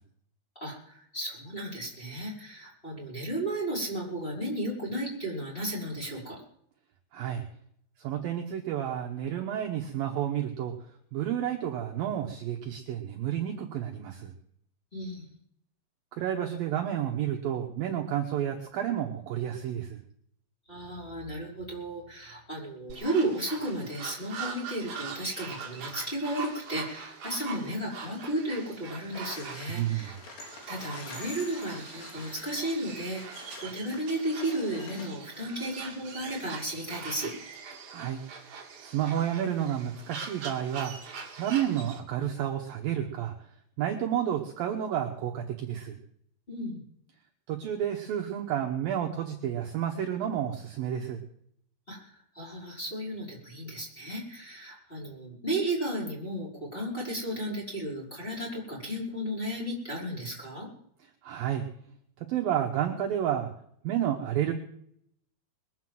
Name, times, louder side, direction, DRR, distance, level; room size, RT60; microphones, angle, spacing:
voice 1, 0.5-6.4 14.9-15.3 20.7-37.3 46.5-46.8 51.9-60.7, right 1 dB, 10° left, -6 dB, 5.0 m, -34 dB
voice 2, 7.1-7.4 8.0-10.7 11.1-14.3 16.2-20.0 29.7-30.1 37.9-38.2 38.8-40.9 41.4-43.3 43.8-46.0 47.5-51.2 61.2-61.6 62.3-63.5 63.8-64.5, right 10 dB, 70° right, 2 dB, 2.5 m, -30 dB
sound 1, 22.9-42.0, right 5 dB, 50° right, 3.1 m, -43 dB
sound 2, 29.1-35.1, left 4 dB, 70° left, 4.8 m, -47 dB
21.5 x 7.8 x 7.6 m, 0.69 s
omnidirectional pair, 5.1 m